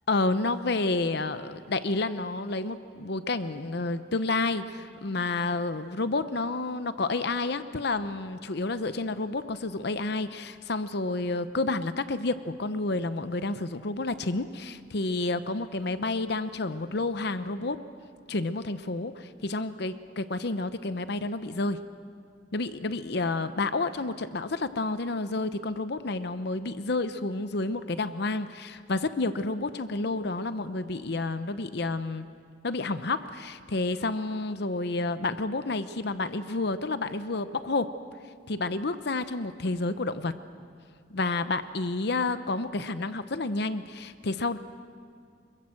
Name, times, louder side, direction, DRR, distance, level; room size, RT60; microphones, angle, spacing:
voice 1, 0.1-17.8 18.3-21.8 22.5-32.3 32.6-37.9 38.5-40.3 41.1-44.6, left 3 dB, 60° left, 12 dB, 0.8 m, -30 dB
26.0 x 23.0 x 7.7 m, 2.2 s
head